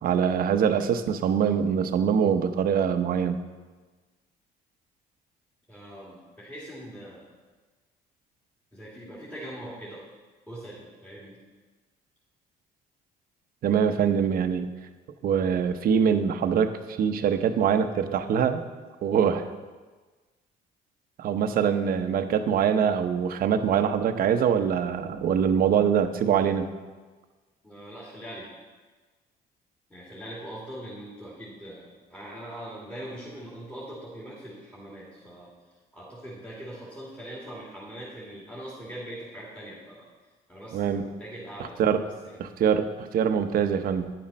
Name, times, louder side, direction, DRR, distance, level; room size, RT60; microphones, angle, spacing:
voice 1, 0.0-3.4 13.6-14.7 15.2-18.6 19.0-19.5 21.2-26.7 40.7-41.0 41.8-42.0 42.4-44.1, right 7 dB, 60° right, 8 dB, 0.8 m, -24 dB
voice 2, 5.7-7.3 8.7-10.0 10.5-11.4 27.6-28.5 29.9-35.5 35.9-40.1 40.5-42.4, right 1 dB, 10° left, -7 dB, 2.5 m, -42 dB
10.0 x 7.3 x 5.3 m, 1.3 s
cardioid pair, 110°, 17 cm